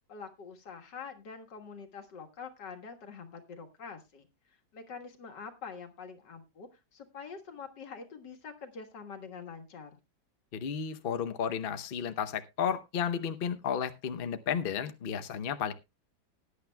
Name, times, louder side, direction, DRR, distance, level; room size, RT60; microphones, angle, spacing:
voice 1, 0.1-4.3 4.7-10.0, left 5 dB, 85° left, 5 dB, 2.2 m, -45 dB
voice 2, 10.5-15.7, left 7 dB, 45° left, 9 dB, 0.7 m, -33 dB
19.5 x 9.8 x 2.2 m, 0.23 s
omnidirectional pair, 1.8 m